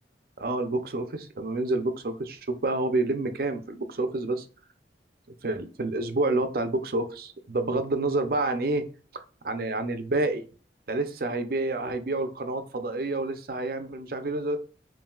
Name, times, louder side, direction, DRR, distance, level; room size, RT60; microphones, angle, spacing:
voice 1, 0.4-4.4 5.4-8.9 9.1-10.4 10.9-14.6, right 2 dB, 55° right, 8 dB, 0.6 m, -28 dB
5.4 x 2.7 x 2.3 m, 0.37 s
head